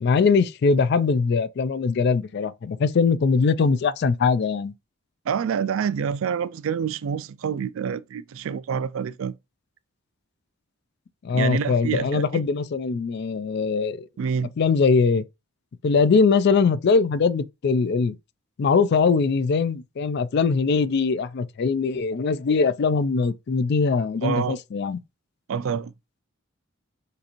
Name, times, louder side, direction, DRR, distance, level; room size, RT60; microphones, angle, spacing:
voice 1, 0.0-4.7 11.2-14.1 14.6-15.2 15.8-18.2 18.6-25.0, left 5 dB, 50° left, 0.3 m, -21 dB
voice 2, 5.3-9.3 11.3-12.4 14.2-14.5 24.2-24.6 25.5-25.9, right 7 dB, 70° right, 0.3 m, -27 dB
6.6 x 2.5 x 2.9 m
head